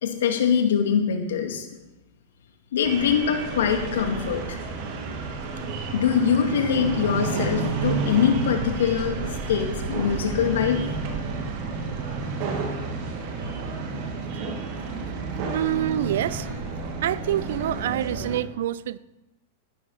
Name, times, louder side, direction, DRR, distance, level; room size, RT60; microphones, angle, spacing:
voice 1, 0.0-1.6 2.7-4.6 5.9-9.2 9.5-10.8, left 7 dB, 70° left, 2.2 m, -23 dB
sound 1, 2.8-18.4, right 4 dB, 50° right, 2.3 m, -30 dB
voice 2, 15.5-16.5 17.0-19.0, right 12 dB, 65° right, 0.4 m, -26 dB
14.5 x 11.5 x 4.2 m
hypercardioid pair, 100°, 0 cm